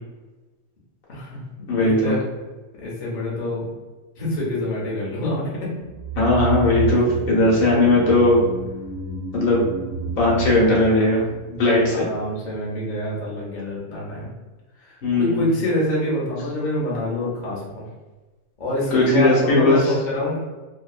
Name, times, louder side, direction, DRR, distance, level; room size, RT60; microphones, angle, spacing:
voice 1, 1.1-2.2 2.8-3.8 4.2-5.7 6.8-7.0 11.4-14.3 14.8-17.9 18.6-20.4, left 1 dB, 45° left, -5 dB, 0.5 m, -26 dB
voice 2, 1.7-2.1 6.1-8.4 9.3-9.6 10.2-11.3 11.6-12.0 15.0-15.5 18.9-19.8, left 2 dB, 65° left, -5 dB, 1.2 m, -18 dB
sound 1, 5.8-12.3 12.5-12.6, right 3 dB, 45° right, 0.6 m, -30 dB
2.7 x 2.1 x 2.3 m, 1.2 s
omnidirectional pair, 1.6 m